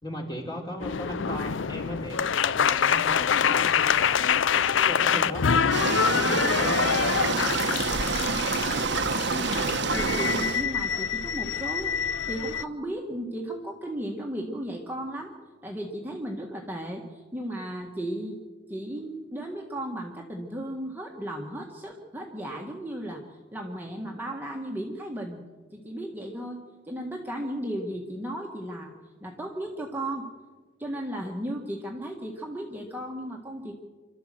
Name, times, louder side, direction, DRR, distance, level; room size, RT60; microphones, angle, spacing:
voice 1, 0.0-7.6, equal, 20° left, 1 dB, 3.2 m, -38 dB
sound 1, 0.8-12.6, left 7 dB, 70° left, 0.5 m, -26 dB
sound 2, 5.7-10.6, right 4 dB, 60° right, 1.1 m, -27 dB
voice 2, 9.3-12.0 12.3-15.3 15.6-18.4 18.7-23.2 23.5-25.4 25.7-26.6 26.8-28.9 29.2-30.3 30.8-33.7, right 1 dB, 10° right, 0 dB, 1.6 m, -35 dB
27.0 x 12.5 x 7.7 m, 1.4 s
head